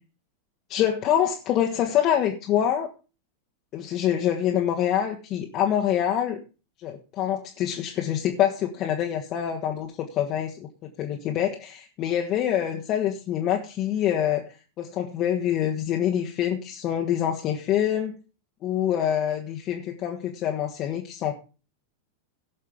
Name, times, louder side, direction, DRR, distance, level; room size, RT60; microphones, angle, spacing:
voice 1, 0.7-2.9 3.7-6.4 6.8-18.2 18.6-21.4, left 10 dB, 35° left, 1 dB, 1.5 m, -26 dB
17.0 x 6.4 x 5.2 m, 0.34 s
figure-of-eight pair, 90°, 0 cm